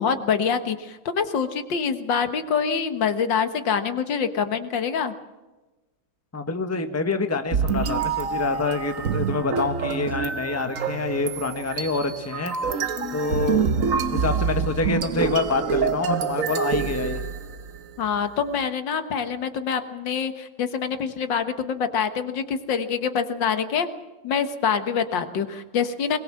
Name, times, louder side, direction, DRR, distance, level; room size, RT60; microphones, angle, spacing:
voice 1, 0.0-5.1 13.0-13.2 18.0-23.9 24.2-26.2, left 6 dB, 75° left, 9 dB, 2.1 m, -25 dB
voice 2, 6.3-13.6 14.1-17.3, left 3 dB, 10° left, 7 dB, 1.2 m, -27 dB
sound 1, 7.5-17.8, right 6 dB, 50° right, 1.3 m, -26 dB
22.0 x 21.0 x 7.5 m, 1.1 s
omnidirectional pair, 2.0 m